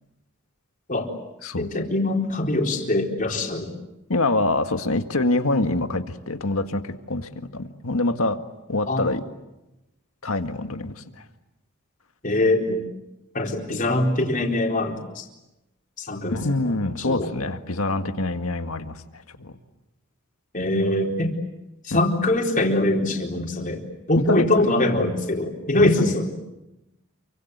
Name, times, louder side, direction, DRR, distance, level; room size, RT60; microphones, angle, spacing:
voice 1, 1.6-3.7 8.9-9.0 12.2-12.8 13.3-15.2 16.0-16.4 17.0-17.3 20.5-21.3 21.8-26.4, left 1 dB, 40° left, 1 dB, 4.2 m, -23 dB
voice 2, 4.1-8.4 8.7-9.2 10.2-11.2 16.3-19.5 21.9-22.0 24.2-24.6 25.8-26.1, left 2 dB, 75° left, 7 dB, 1.9 m, -25 dB
29.0 x 24.5 x 8.2 m, 0.96 s
head